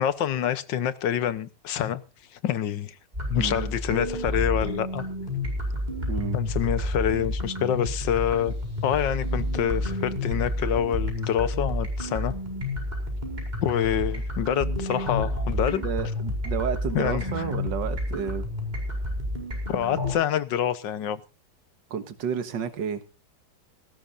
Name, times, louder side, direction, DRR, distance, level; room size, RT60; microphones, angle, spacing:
voice 1, 0.0-2.0 2.4-3.0 3.3-5.0 6.3-8.5 8.8-12.3 13.6-15.8 16.9-17.5 19.7-21.2, left 10 dB, 85° left, 1.7 m, -26 dB
sound 1, 3.1-20.1, left 1 dB, 25° right, 5.2 m, -30 dB
voice 2, 3.4-3.7 6.1-6.4 15.8-18.5 21.9-23.0, right 7 dB, 85° right, 2.0 m, -31 dB
18.5 x 16.0 x 2.6 m
omnidirectional pair, 1.9 m